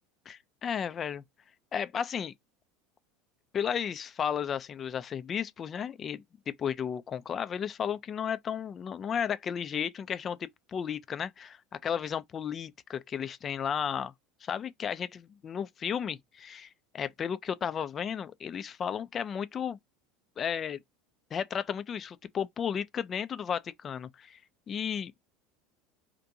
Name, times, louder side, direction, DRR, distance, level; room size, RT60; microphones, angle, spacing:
voice 1, 0.3-1.2 1.7-2.3 3.5-14.1 14.4-16.7 16.9-19.8 20.4-20.8 21.3-24.4 24.7-25.1, left 8 dB, 35° left, 0.3 m, -34 dB
2.6 x 2.1 x 2.7 m
hypercardioid pair, 75°, 0 cm